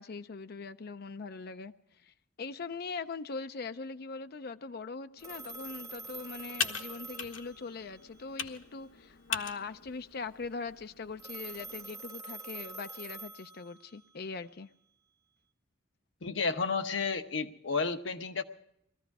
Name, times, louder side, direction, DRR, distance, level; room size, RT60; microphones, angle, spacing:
voice 1, 0.0-14.7, left 4 dB, 55° left, 0.5 m, -41 dB
Computer keyboard, 5.2-11.9, left 7 dB, 85° left, 1.2 m, -41 dB
Telephone, 5.2-8.1 11.2-14.0, right 3 dB, 15° right, 0.8 m, -45 dB
voice 2, 16.2-18.4, left 4 dB, 70° left, 1.1 m, -32 dB
20.5 x 14.5 x 4.8 m
head